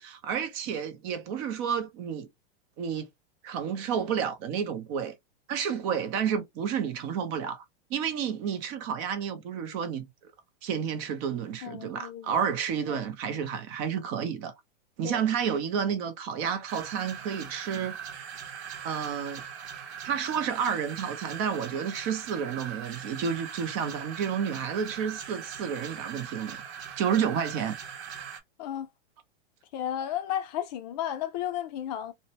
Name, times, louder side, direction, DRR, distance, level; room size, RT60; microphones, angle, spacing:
voice 1, 0.0-2.3 2.8-3.1 3.4-5.1 5.5-7.6 7.9-10.1 10.6-14.5 15.0-18.0 18.8-19.4 20.0-26.6 27.0-27.8, right 7 dB, 40° right, 0.6 m, -30 dB
voice 2, 11.6-12.4 12.9-13.0 15.0-15.3 28.6-28.9 29.7-32.1, left 11 dB, 45° left, 0.4 m, -33 dB
sound 1, 16.7-28.4, right 8 dB, 85° right, 0.9 m, -41 dB
2.6 x 2.2 x 2.8 m
hypercardioid pair, 135°, 32 cm